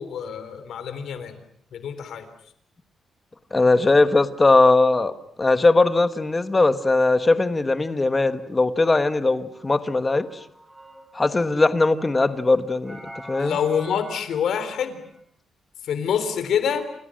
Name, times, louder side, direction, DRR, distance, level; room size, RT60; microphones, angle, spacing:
voice 1, 0.0-1.4 1.7-2.3 13.4-15.0 15.9-16.9, left 7 dB, 65° left, 11 dB, 3.6 m, -26 dB
voice 2, 3.5-5.1 5.4-10.3 11.1-13.0 13.3-13.6, left 3 dB, 15° left, 10 dB, 1.3 m, -19 dB
sound 1, 9.5-11.2 11.6-15.2, right 1 dB, 10° right, 2.9 m, -45 dB
28.5 x 28.5 x 6.4 m, 0.66 s
wide cardioid pair, 180°, 0 cm